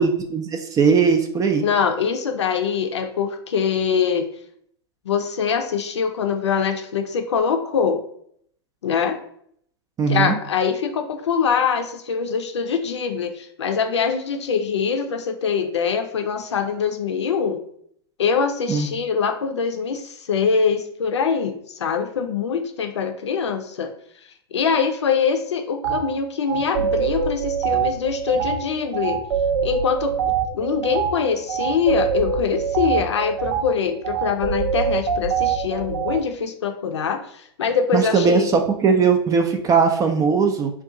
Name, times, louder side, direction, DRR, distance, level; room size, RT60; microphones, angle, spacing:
voice 1, 0.0-1.6 10.0-10.4 18.7-18.9 37.9-40.7, right 5 dB, 25° right, 5 dB, 0.4 m, -19 dB
voice 2, 1.6-4.3 5.0-8.0 8.8-9.2 10.1-17.6 18.2-23.9 24.5-29.2 29.6-30.1 30.5-38.5, left 6 dB, 85° left, 6 dB, 0.5 m, -23 dB
sound 1, 25.8-26.0 26.5-36.2, right 6 dB, 75° right, 0.5 m, -24 dB
2.5 x 2.3 x 3.7 m, 0.65 s
hypercardioid pair, 105°, 14 cm